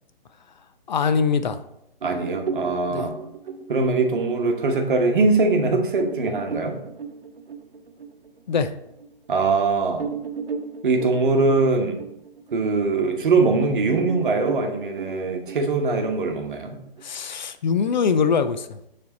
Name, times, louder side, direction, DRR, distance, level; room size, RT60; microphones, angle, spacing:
voice 1, 0.9-1.6 2.9-3.1 8.5-8.7 17.0-18.8, left 6 dB, 50° left, 10 dB, 0.4 m, -22 dB
voice 2, 2.0-3.2 3.7-6.8 9.3-10.1 10.8-12.0 12.5-16.8, right 3 dB, 60° right, 4 dB, 1.0 m, -22 dB
sound 1, 2.0-9.1 9.5-9.6 10.0-13.6 13.9-17.0, right 5 dB, 75° right, 0.7 m, -35 dB
6.8 x 3.4 x 4.1 m, 0.81 s
figure-of-eight pair, 140°, 29 cm